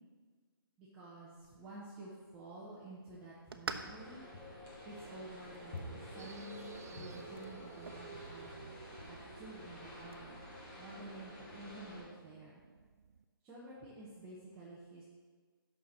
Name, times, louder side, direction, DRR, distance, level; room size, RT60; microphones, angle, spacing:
voice 1, 0.8-4.2 4.8-8.7 9.1-10.4 10.8-12.6 13.4-15.0, right 2 dB, 10° right, -8 dB, 0.9 m, -51 dB
sound 1, 1.3-10.3, right 4 dB, 85° right, 0.8 m, -51 dB
sound 2, 3.7-12.0, left 1 dB, 20° left, 1.5 m, -50 dB
sound 3, 6.2-13.2, right 6 dB, 45° right, 0.3 m, -55 dB
6.7 x 6.0 x 6.5 m, 1.5 s
hypercardioid pair, 170°, 12 cm